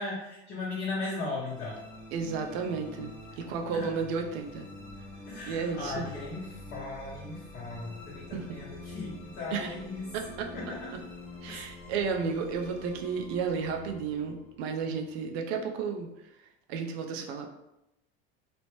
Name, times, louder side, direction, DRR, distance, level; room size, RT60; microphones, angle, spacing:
voice 1, 0.0-1.8 5.3-10.2 10.5-11.0 11.5-11.6, left 3 dB, 35° left, -7 dB, 0.8 m, -37 dB
sound 1, 1.3-15.7, left 2 dB, 5° left, 0.7 m, -46 dB
voice 2, 2.1-4.7 5.4-6.1 8.3-8.5 9.5-9.7 10.1-10.5 11.4-16.1 16.7-17.5, right 5 dB, 75° right, 3 dB, 0.6 m, -33 dB
3.0 x 2.0 x 3.0 m, 0.91 s
supercardioid pair, 105°, 31 cm